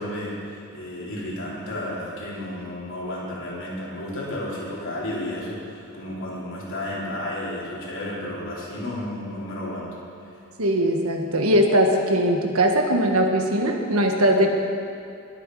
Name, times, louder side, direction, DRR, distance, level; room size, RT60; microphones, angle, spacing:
voice 1, 0.0-9.9, left 1 dB, 60° left, -6 dB, 3.8 m, -32 dB
voice 2, 10.6-14.5, equal, 75° right, 2 dB, 1.6 m, -20 dB
21.0 x 8.6 x 4.8 m, 2.7 s
head